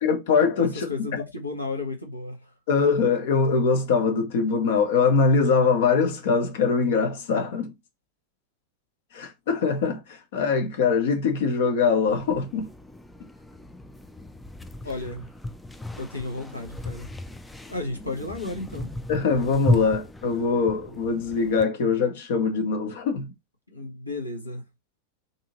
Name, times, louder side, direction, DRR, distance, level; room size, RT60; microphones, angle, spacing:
voice 1, 0.0-0.9 2.7-7.7 9.1-12.7 19.1-23.3, left 5 dB, 55° left, 0.8 m, -22 dB
voice 2, 0.6-2.5 14.8-15.3 16.0-17.1 17.7-18.9 23.7-24.6, left 2 dB, 85° left, 1.0 m, -33 dB
sound 1, 12.1-21.7, left 2 dB, 5° left, 0.3 m, -34 dB
2.7 x 2.6 x 2.8 m
figure-of-eight pair, 90°, 0 cm